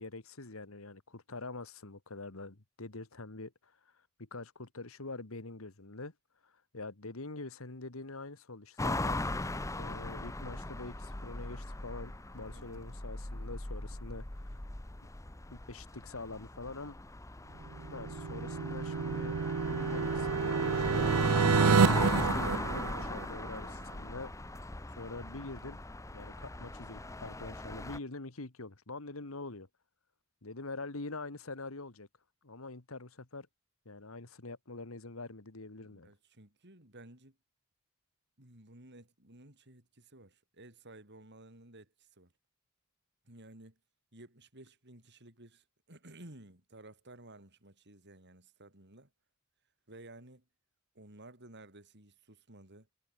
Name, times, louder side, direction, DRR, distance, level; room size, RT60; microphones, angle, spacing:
voice 1, 0.0-3.8 4.2-6.1 6.4-9.2 9.8-14.6 15.5-17.0 17.9-19.4 19.7-21.1 21.9-24.3 25.0-25.8 26.1-29.7 30.4-32.1 32.4-33.5 33.9-36.1, left 3 dB, 70° left, 1.9 m, -45 dB
sound 1, 8.8-28.0, left 2 dB, 15° left, 0.8 m, -39 dB
sound 2, 17.7-23.6, right 5 dB, 85° right, 0.6 m, -29 dB
voice 2, 35.8-37.4 38.4-42.3 43.2-43.8 44.1-49.1 49.9-50.5 50.9-52.9, right 1 dB, 55° right, 6.1 m, -55 dB
head